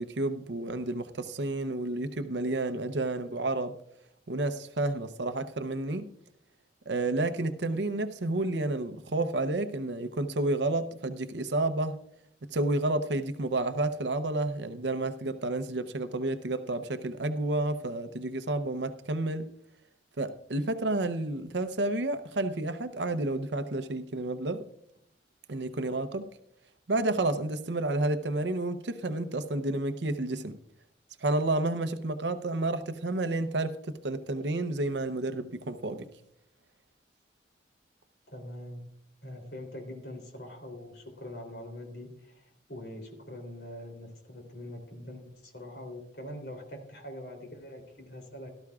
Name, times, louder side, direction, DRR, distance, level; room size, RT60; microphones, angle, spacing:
voice 1, 0.0-3.7 4.3-6.1 6.9-12.0 12.5-19.5 20.2-24.7 25.5-26.2 26.9-30.6 31.2-36.1, right 2 dB, 80° right, 0.7 m, -30 dB
voice 2, 38.3-38.8 39.2-48.5, left 1 dB, 65° left, 3.2 m, -43 dB
17.5 x 13.0 x 2.4 m
head